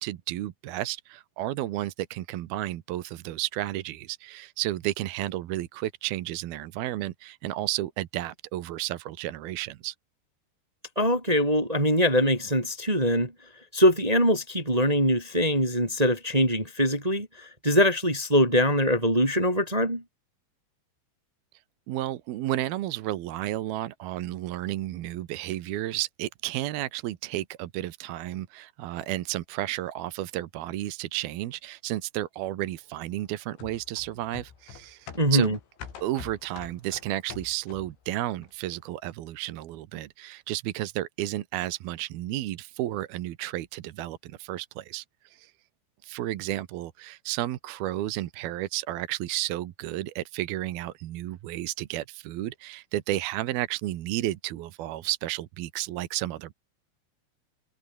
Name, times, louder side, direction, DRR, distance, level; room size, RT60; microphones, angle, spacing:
voice 1, 0.0-9.9 21.9-35.5 36.0-45.0 45.3-45.5 46.0-56.5, right 15 dB, 70° right, 2.7 m, -32 dB
voice 2, 11.0-13.3 13.7-20.0 35.1-35.6, equal, 10° right, 2.2 m, -23 dB
sound 1, 33.6-38.1 38.4-38.5, left 7 dB, 90° left, 6.5 m, -45 dB
omnidirectional pair, 5.2 m